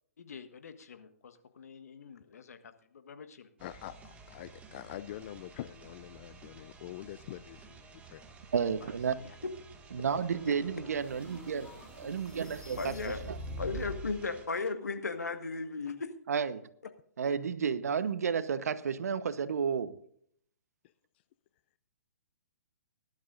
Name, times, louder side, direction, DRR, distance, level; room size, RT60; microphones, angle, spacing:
voice 1, 0.2-3.5 8.8-9.4, left 6 dB, 70° left, 1.5 m, -51 dB
voice 2, 3.6-8.2, left 13 dB, 45° left, 0.5 m, -45 dB
sound 1, 3.6-14.5, right 4 dB, 15° right, 1.9 m, -53 dB
voice 3, 8.5-9.1 9.9-13.4 16.3-16.6 17.2-19.9, right 6 dB, 70° right, 1.0 m, -32 dB
sound 2, 10.2-14.2, equal, 5° left, 3.0 m, -45 dB
voice 4, 12.8-13.2 13.6-16.1, left 4 dB, 90° left, 1.8 m, -35 dB
19.5 x 11.5 x 2.5 m
hypercardioid pair, 130°, 9 cm